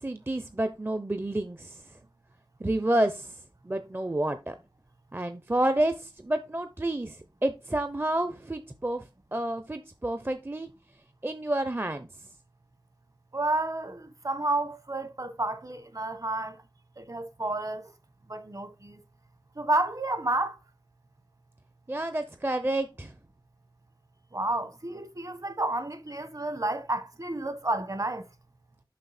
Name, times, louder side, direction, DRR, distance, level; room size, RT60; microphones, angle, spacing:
voice 1, 0.0-1.8 2.6-4.6 5.1-10.7 11.2-12.1 21.9-23.1, right 1 dB, 25° right, 0.7 m, -29 dB
voice 2, 13.3-16.6 17.0-17.9 18.3-19.0 19.5-20.6 24.3-28.2, right 2 dB, 45° right, 1.3 m, -30 dB
7.5 x 5.4 x 4.2 m
wide cardioid pair, 55°, 8 cm